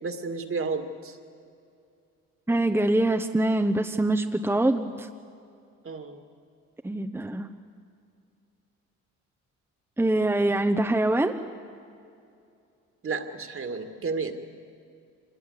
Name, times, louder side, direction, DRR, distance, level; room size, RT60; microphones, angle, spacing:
voice 1, 0.0-1.2 5.8-6.2 13.0-14.3, right 4 dB, 45° right, 6 dB, 2.2 m, -32 dB
voice 2, 2.5-5.1 6.8-7.5 10.0-11.4, right 1 dB, 10° right, 5 dB, 0.9 m, -24 dB
25.5 x 20.5 x 8.3 m, 2.5 s
cardioid pair, 90°, 30 cm